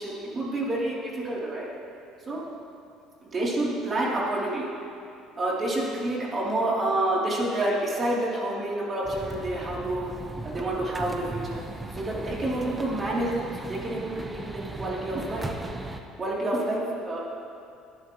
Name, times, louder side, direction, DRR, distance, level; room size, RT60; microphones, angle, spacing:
voice 1, 0.0-1.7 2.3-2.4 3.3-4.7 5.4-10.1 10.4-11.6 11.9-15.5 16.2-17.2, right 1 dB, 30° right, -5 dB, 3.4 m, -28 dB
sound 1, 9.0-16.0, right 2 dB, 10° right, 1.0 m, -37 dB
20.5 x 12.0 x 3.2 m, 2.6 s
cardioid pair, 115°, 0 cm